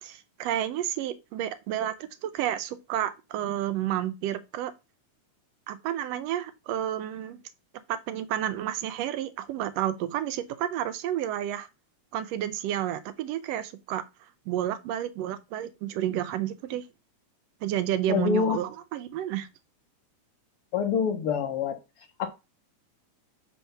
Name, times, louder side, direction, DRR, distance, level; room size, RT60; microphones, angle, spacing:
voice 1, 0.0-4.7 5.7-7.4 7.9-11.7 12.1-14.0 14.5-16.8 17.6-19.5, right 11 dB, 85° right, 1.4 m, -31 dB
voice 2, 18.1-18.6 20.7-21.8 22.2-22.3, left 6 dB, 80° left, 1.2 m, -26 dB
9.1 x 3.2 x 5.5 m
omnidirectional pair, 3.5 m